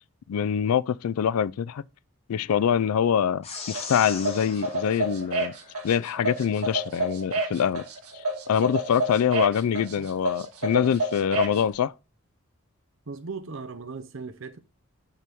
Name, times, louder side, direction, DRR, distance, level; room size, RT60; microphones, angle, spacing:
voice 1, 0.3-1.8 2.3-5.5 5.8-7.8 8.1-11.9, left 8 dB, 85° left, 0.4 m, -24 dB
sound 1, 3.4-6.1, left 5 dB, 25° left, 1.1 m, -40 dB
sound 2, 3.7-11.6, right 2 dB, 80° right, 1.8 m, -29 dB
voice 2, 13.1-14.6, right 4 dB, 60° right, 0.7 m, -37 dB
6.1 x 5.6 x 3.5 m
head